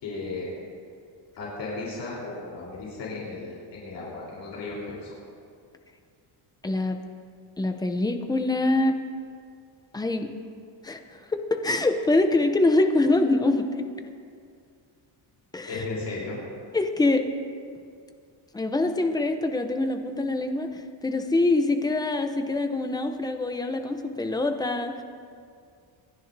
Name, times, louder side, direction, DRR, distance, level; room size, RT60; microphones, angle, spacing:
voice 1, 0.0-0.5 1.4-5.2 15.7-16.4, left 3 dB, 60° left, -5 dB, 3.8 m, -35 dB
voice 2, 6.6-7.0 7.6-8.9 9.9-10.3 10.8-13.9 15.5-15.8 16.7-17.2 18.5-25.0, left 2 dB, 10° left, 6 dB, 0.6 m, -24 dB
27.0 x 11.0 x 2.7 m, 2.3 s
cardioid pair, 155°, 47 cm